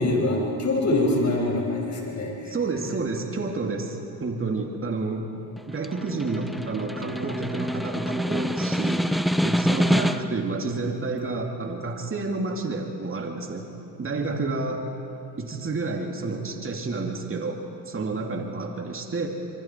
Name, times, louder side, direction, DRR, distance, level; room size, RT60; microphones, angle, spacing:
voice 1, 0.0-2.9, left 2 dB, 40° left, 0 dB, 6.0 m, -25 dB
voice 2, 2.4-5.3 5.7-9.0 9.4-13.7 14.0-14.8 15.4-17.6 17.9-19.3, right 3 dB, 30° right, 2 dB, 2.8 m, -30 dB
Snare drum, 5.6-10.5, equal, ahead, 0.8 m, -26 dB
26.5 x 23.5 x 4.6 m, 2.7 s
supercardioid pair, 65°, 41 cm